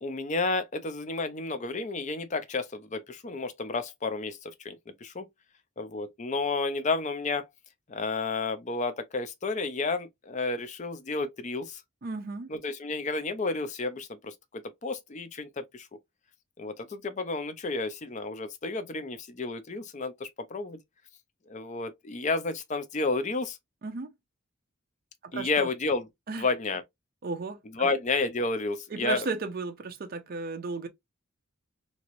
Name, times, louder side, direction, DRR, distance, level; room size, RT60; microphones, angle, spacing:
voice 1, 0.0-5.3 5.8-7.5 7.9-11.8 12.5-15.9 16.6-20.8 21.5-23.6 25.3-26.1 26.4-26.8 27.7-29.3, left 3 dB, 35° left, 0.5 m, -31 dB
voice 2, 12.0-12.5 23.8-24.1 25.2-25.7 26.3-26.5 27.2-27.9 28.9-30.9, right 4 dB, 45° right, 0.5 m, -34 dB
3.0 x 2.9 x 2.6 m
head